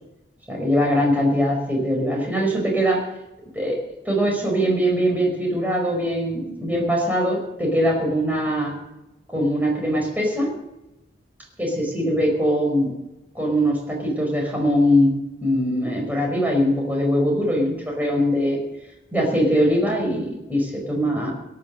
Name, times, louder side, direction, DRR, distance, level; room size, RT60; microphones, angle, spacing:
voice 1, 0.5-3.0 3.5-8.8 9.3-10.5 11.6-12.9 13.3-15.1 15.4-18.6 19.1-21.3, equal, 10° right, 0 dB, 5.2 m, -22 dB
18.0 x 11.0 x 6.6 m, 0.95 s
head